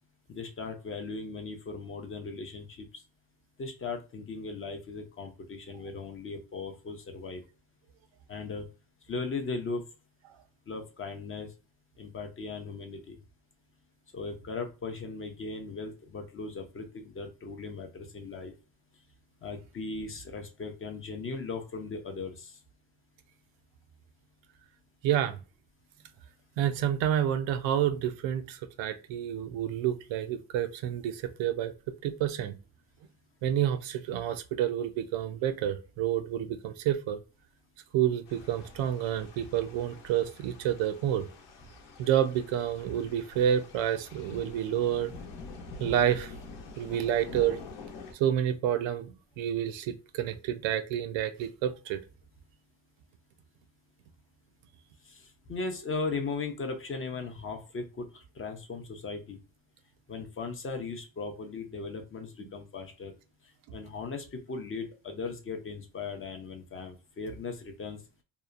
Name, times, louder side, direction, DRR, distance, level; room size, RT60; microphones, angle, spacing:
voice 1, 0.3-2.9 3.6-7.4 8.3-8.7 9.1-9.8 10.7-11.5 12.0-13.2 14.1-18.5 19.4-22.6 55.0-59.4 60.1-63.1 63.7-68.0, left 4 dB, 30° left, 0.5 m, -38 dB
voice 2, 25.0-25.4 26.6-31.7 32.0-32.6 33.4-37.2 37.9-41.3 42.0-45.1 45.8-46.3 46.8-47.6 48.1-52.0, right 10 dB, 85° right, 0.5 m, -29 dB
sound 1, 38.3-48.1, left 3 dB, 75° left, 0.8 m, -46 dB
2.8 x 2.1 x 2.4 m
cardioid pair, 130°, 45 cm